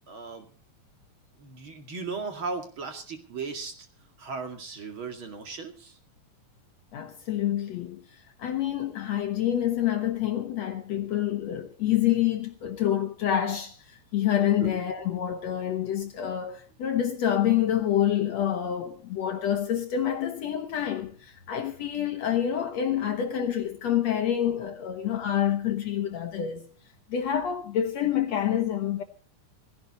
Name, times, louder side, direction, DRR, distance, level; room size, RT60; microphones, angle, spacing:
voice 1, 0.1-0.5 1.4-3.7 4.2-6.0 14.6-14.8, right 4 dB, 40° right, 2.7 m, -36 dB
voice 2, 6.9-26.6 27.1-29.0, left 10 dB, 60° left, 2.0 m, -27 dB
17.0 x 16.5 x 4.2 m
omnidirectional pair, 4.0 m